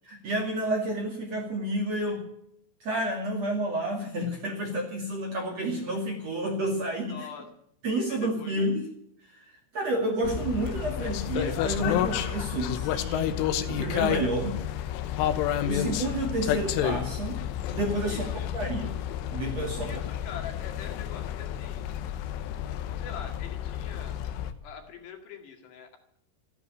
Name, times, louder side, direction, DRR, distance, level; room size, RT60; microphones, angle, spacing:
voice 1, 0.1-2.2 2.8-7.3 7.8-8.8 9.7-13.3 13.7-14.6 15.6-17.4 17.7-18.3 18.5-18.9 19.3-19.9, right 1 dB, 45° right, 1 dB, 2.7 m, -30 dB
voice 2, 7.1-7.5 8.1-8.5 18.1-18.5 19.8-21.9 22.9-24.2 24.6-26.0, left 7 dB, 65° left, 4 dB, 4.0 m, -43 dB
sound 1, 10.2-24.5, left 11 dB, 90° left, 3.6 m, -30 dB
14.5 x 11.5 x 8.7 m, 0.72 s
omnidirectional pair, 5.6 m